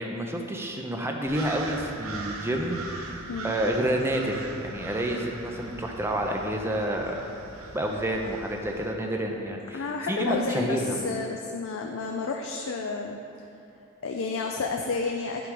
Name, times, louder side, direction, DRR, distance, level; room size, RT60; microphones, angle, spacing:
voice 1, 0.0-3.2 3.4-7.2 7.7-9.8 10.1-11.0, right 1 dB, 10° right, 1 dB, 0.6 m, -29 dB
sound 1, 1.3-8.9, right 3 dB, 90° right, 0.7 m, -40 dB
voice 2, 9.7-13.2 14.0-15.5, left 4 dB, 65° left, 2 dB, 0.4 m, -31 dB
10.0 x 3.9 x 4.8 m, 2.7 s
head